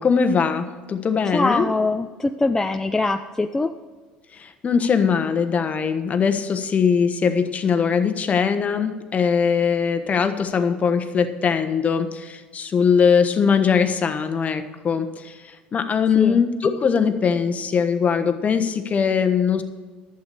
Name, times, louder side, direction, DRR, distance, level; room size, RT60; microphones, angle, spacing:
voice 1, 0.0-1.7 4.3-19.6, left 6 dB, 35° left, 8 dB, 1.2 m, -21 dB
voice 2, 1.3-3.7 16.1-16.4, left 2 dB, 10° left, 6 dB, 0.5 m, -23 dB
11.5 x 8.1 x 7.0 m, 1.4 s
hypercardioid pair, 80°, 4 cm